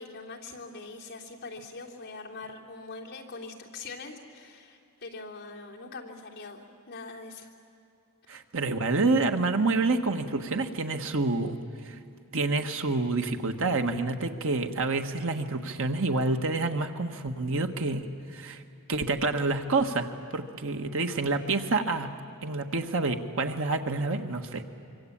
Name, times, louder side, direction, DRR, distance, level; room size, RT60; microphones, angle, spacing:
voice 1, 0.0-7.5 8.3-8.4, left 3 dB, 45° left, -2 dB, 3.3 m, -43 dB
voice 2, 8.3-12.0 12.3-18.6 18.9-22.1 22.4-24.6, right 3 dB, 65° right, 6 dB, 1.5 m, -28 dB
25.5 x 24.5 x 8.8 m, 2.8 s
head